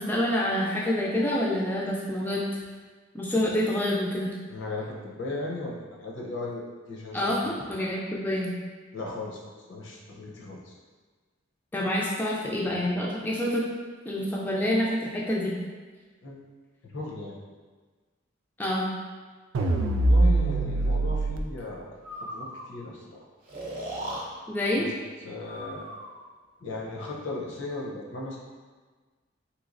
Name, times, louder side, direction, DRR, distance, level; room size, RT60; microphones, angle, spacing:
voice 1, 0.0-2.5 3.1-4.3 7.1-8.5 11.7-13.6 14.1-15.5 18.6-18.9 24.5-24.9, left 1 dB, 10° left, -5 dB, 0.3 m, -27 dB
voice 2, 4.5-6.6 6.9-7.3 8.9-9.4 9.7-10.8 16.2-16.4 16.8-17.3 20.0-21.9 22.3-23.3 24.8-24.9 25.2-25.9 26.6-28.4, left 2 dB, 65° left, -3 dB, 0.6 m, -36 dB
sound 1, 19.5-21.4, right 2 dB, 75° right, 0.3 m, -22 dB
Breathing, 22.0-22.7 23.5-24.2 25.4-26.2, right 1 dB, 45° right, 0.6 m, -37 dB
3.3 x 3.0 x 2.5 m, 1.4 s
head